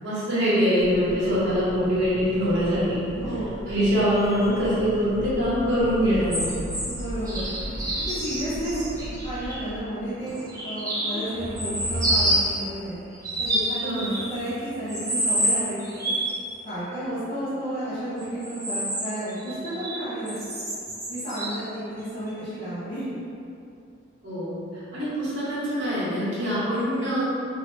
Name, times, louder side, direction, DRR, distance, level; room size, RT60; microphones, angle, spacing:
voice 1, 0.0-3.0 3.7-6.7 8.7-8.8 13.8-14.1 24.2-27.2, equal, 75° right, -12 dB, 1.4 m, -24 dB
sound 1, 0.8-9.8, equal, 70° left, 1.2 m, -38 dB
voice 2, 3.2-3.6 6.8-7.6 8.1-13.0 13.4-16.1 16.6-20.6 21.1-23.1, right 1 dB, 30° left, -15 dB, 0.9 m, -32 dB
sound 2, 6.0-9.6 10.3-12.6 13.1-14.5 14.9-16.3 18.2-20.0 20.3-21.6 22.3-22.4, right 1 dB, 20° right, 0.6 m, -28 dB
3.1 x 2.9 x 2.7 m, 2.6 s
head